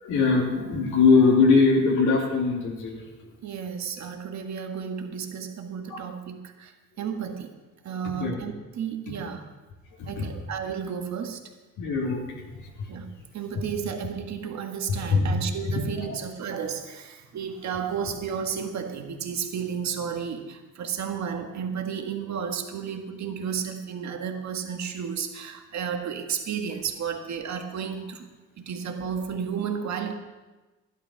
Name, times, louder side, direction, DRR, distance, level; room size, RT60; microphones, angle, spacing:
voice 1, 0.0-3.0 5.9-6.0 8.0-8.4 10.0-10.2 11.8-12.4 15.1-15.3 16.1-16.2, left 4 dB, 80° left, -2 dB, 2.7 m, -21 dB
voice 2, 3.4-6.7 7.0-7.5 7.8-9.4 10.0-11.5 12.9-13.1 13.3-28.3 28.6-30.2, right 7 dB, 65° right, 4 dB, 1.7 m, -32 dB
12.5 x 11.5 x 5.9 m, 1.2 s
cardioid pair, 90°, 30 cm